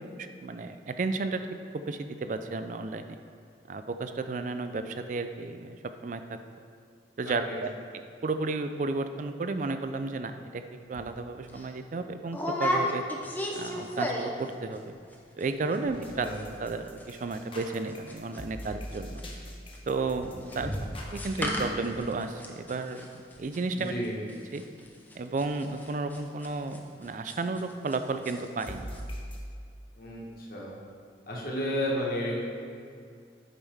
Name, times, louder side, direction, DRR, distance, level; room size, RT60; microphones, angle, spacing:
voice 1, 0.2-1.4 1.7-3.2 3.7-5.8 6.0-6.4 7.2-7.7 8.2-10.6 10.9-13.0 13.5-14.9 15.4-16.3 16.6-19.2 19.9-20.7 21.1-23.0 23.4-23.9 24.5-24.6 25.2-28.9, right 3 dB, 45° right, 8 dB, 0.3 m, -33 dB
voice 2, 7.2-7.6 16.2-16.4 20.5-20.8 23.7-24.2 30.0-30.7 31.3-32.4, equal, 50° left, -4 dB, 1.4 m, -33 dB
sound 1, 10.9-11.1 11.5-11.7 12.3-14.5 14.7-15.1 15.4-15.5 15.7-16.1 16.3-28.0 28.2-28.7 28.9-29.0, left 1 dB, 10° left, 0.6 m, -34 dB
sound 2, 15.9-21.6 28.7-29.4, equal, 30° left, 1.0 m, -42 dB
8.7 x 6.3 x 3.5 m, 2.4 s
head